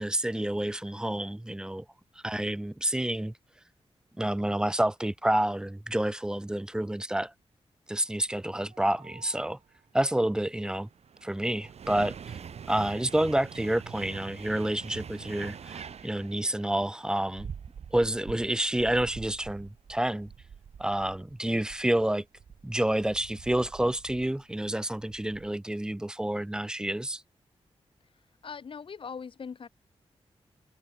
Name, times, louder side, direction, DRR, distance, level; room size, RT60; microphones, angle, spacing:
voice 1, 0.0-1.8 2.2-3.3 4.2-7.3 7.9-9.6 9.9-10.9 11.2-12.2 12.7-17.5 17.9-20.3 20.8-22.2 22.6-27.2, right 1 dB, 5° right, 0.4 m, -29 dB
sound 1, 8.7-9.5 10.5-25.5, right 7 dB, 75° right, 1.7 m, -45 dB
voice 2, 28.4-29.7, left 6 dB, 50° left, 1.2 m, -40 dB
wide cardioid pair, 145°, 11 cm